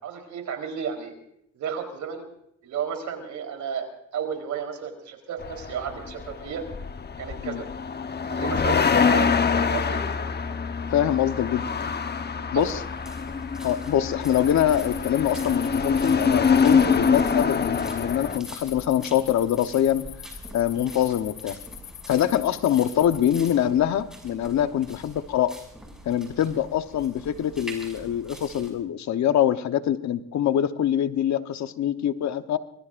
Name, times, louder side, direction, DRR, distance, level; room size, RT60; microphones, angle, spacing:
voice 1, 0.0-1.1 1.5-2.3 2.6-3.9 4.1-6.6 7.2-7.7 8.3-9.3 9.5-10.0 12.4-12.7, right 7 dB, 70° right, 4 dB, 4.0 m, -32 dB
sound 1, 5.4-18.4, left 5 dB, 35° left, 1.1 m, -25 dB
voice 2, 10.9-11.9 12.5-12.8 13.6-20.1 20.5-21.6 22.1-25.6 26.0-32.6, left 10 dB, 65° left, 10 dB, 1.1 m, -24 dB
sound 2, 12.6-28.7, equal, ahead, 6.7 m, -45 dB
sound 3, 14.2-23.5, left 11 dB, 85° left, 1.7 m, -43 dB
26.0 x 21.0 x 2.6 m, 0.75 s
cardioid pair, 90°, 30 cm